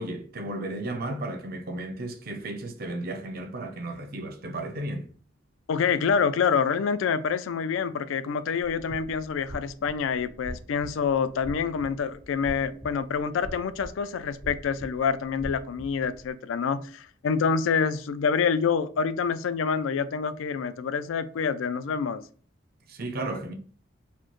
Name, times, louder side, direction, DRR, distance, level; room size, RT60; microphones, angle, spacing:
voice 1, 0.0-5.1 22.9-23.5, right 2 dB, 50° right, 0.6 m, -34 dB
voice 2, 5.7-22.2, left 6 dB, 80° left, 0.3 m, -27 dB
sound 1, 8.6-16.3, equal, 80° right, 1.4 m, -44 dB
4.3 x 2.1 x 3.0 m
head